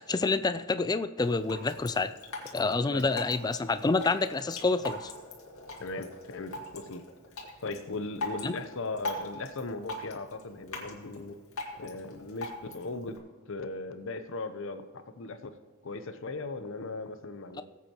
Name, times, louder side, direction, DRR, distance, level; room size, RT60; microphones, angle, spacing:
voice 1, 0.0-2.1 2.5-5.1 8.4-8.5, left 3 dB, 20° left, 12 dB, 0.4 m, -28 dB
Drip, 1.2-13.2, left 2 dB, 80° left, 2.1 m, -42 dB
voice 2, 5.8-7.0 7.6-11.4 11.8-13.2 13.5-15.5 15.8-17.6, left 3 dB, 65° left, 10 dB, 0.7 m, -38 dB
19.5 x 8.3 x 3.0 m, 1.4 s
head